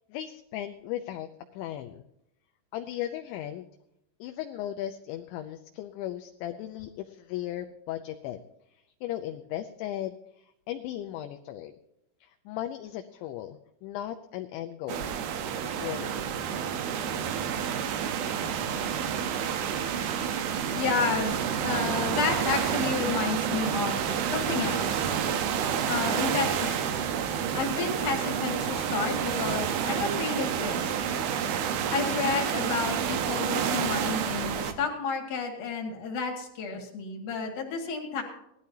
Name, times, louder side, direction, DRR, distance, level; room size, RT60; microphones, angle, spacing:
voice 1, 0.1-1.3 1.5-2.0 2.7-3.7 4.2-8.4 9.0-11.7 12.2-15.1 15.8-16.2, left 12 dB, 80° left, 7 dB, 2.7 m, -36 dB
sound 1, 14.9-34.7, right 8 dB, 90° right, 2.1 m, -29 dB
voice 2, 20.7-21.4 21.6-24.0 24.3-25.1 25.9-26.9 27.5-30.9 31.9-38.2, left 5 dB, 50° left, 1 dB, 2.9 m, -31 dB
19.5 x 13.0 x 2.8 m, 0.81 s
omnidirectional pair, 5.8 m